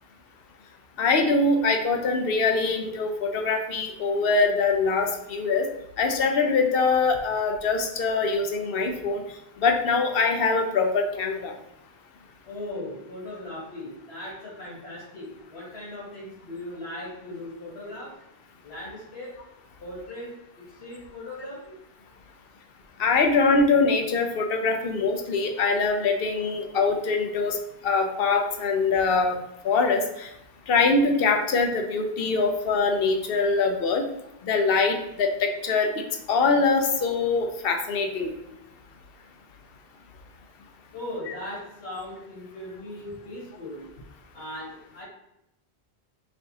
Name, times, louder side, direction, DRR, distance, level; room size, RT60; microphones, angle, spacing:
voice 1, 1.0-5.7 6.0-9.2 9.6-11.5 23.0-27.6 27.8-29.4 29.6-30.3 30.7-34.0 34.4-35.9 36.3-38.3, left 4 dB, 65° left, 4 dB, 0.9 m, -23 dB
voice 2, 12.5-18.2 18.6-19.4 19.8-21.7 40.9-44.0 44.3-45.0, left 1 dB, 85° left, -6 dB, 1.9 m, -38 dB
5.2 x 3.4 x 2.8 m, 0.85 s
omnidirectional pair, 1.1 m